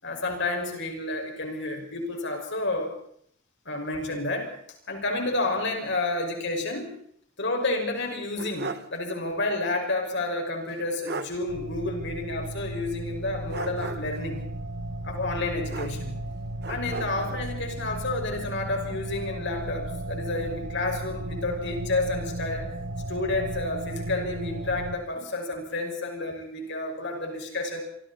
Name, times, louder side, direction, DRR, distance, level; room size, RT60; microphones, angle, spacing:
voice 1, 0.0-2.9 3.7-4.5 4.9-6.9 7.4-14.4 15.0-16.2 16.7-22.7 23.1-27.8, left 2 dB, 55° left, 3 dB, 5.6 m, -30 dB
sound 1, 8.0-9.0 9.3-9.4 10.7-10.8 11.1-11.4 13.5-14.2 15.7-16.3 16.6-17.4, right 3 dB, 50° right, 1.7 m, -36 dB
sound 2, 11.5-25.0, right 1 dB, 70° right, 1.6 m, -35 dB
27.5 x 25.0 x 4.2 m, 0.68 s
head